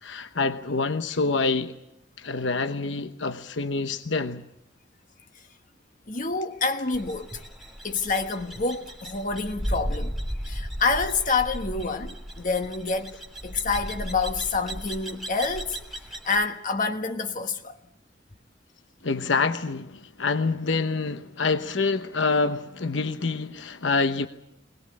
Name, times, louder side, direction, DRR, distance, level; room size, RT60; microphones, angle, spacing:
voice 1, 0.0-1.7 2.2-4.4 19.0-24.3, left 4 dB, 75° left, 1.0 m, -26 dB
voice 2, 6.1-7.5 7.8-10.1 10.4-17.8, left 4 dB, 45° left, 1.3 m, -28 dB
sound 1, 6.9-16.4, equal, ahead, 2.6 m, -35 dB
20.5 x 20.5 x 8.7 m
head